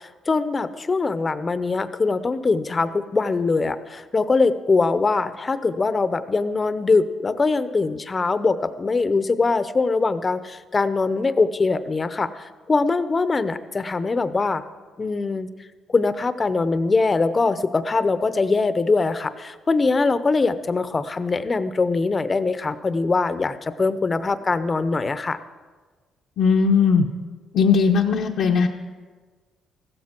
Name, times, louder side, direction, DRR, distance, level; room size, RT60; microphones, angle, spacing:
voice 1, 0.3-12.3 12.7-14.6 15.0-15.5 15.9-25.4, left 3 dB, 30° left, 12 dB, 0.7 m, -22 dB
voice 2, 26.4-27.0 27.5-28.7, left 5 dB, 75° left, -1 dB, 0.8 m, -18 dB
15.0 x 13.5 x 4.5 m, 1.4 s
cardioid pair, 90°, 0 cm